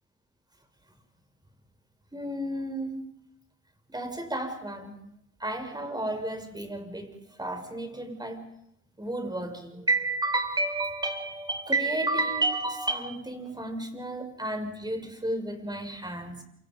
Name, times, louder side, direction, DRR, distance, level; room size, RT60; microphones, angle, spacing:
voice 1, 2.1-3.0 3.9-5.0 5.4-8.4 9.0-16.4, right 2 dB, 10° right, 6 dB, 6.2 m, -31 dB
28.0 x 25.5 x 5.4 m, 0.71 s
supercardioid pair, 75°, 38 cm